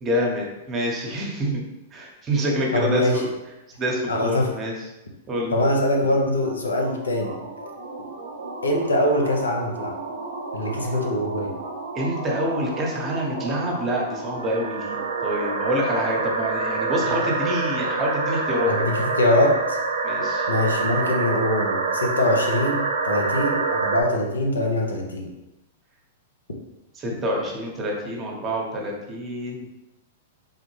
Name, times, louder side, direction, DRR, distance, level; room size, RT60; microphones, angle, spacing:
voice 1, 0.0-1.6 1.9-3.3 3.8-4.7 5.3-5.6 10.8-10.9 11.9-18.7 20.0-20.5 20.8-21.0 26.9-29.7, equal, 25° right, -1 dB, 0.8 m, -27 dB
voice 2, 2.7-3.2 4.1-4.5 5.5-7.7 8.6-10.0 10.5-11.5 17.0-17.2 18.7-19.8 20.5-25.3, left 1 dB, 85° left, 1 dB, 0.6 m, -23 dB
sound 1, 6.4-24.0, right 4 dB, 75° right, 0.5 m, -28 dB
3.6 x 2.1 x 3.2 m, 0.97 s
hypercardioid pair, 110°, 0 cm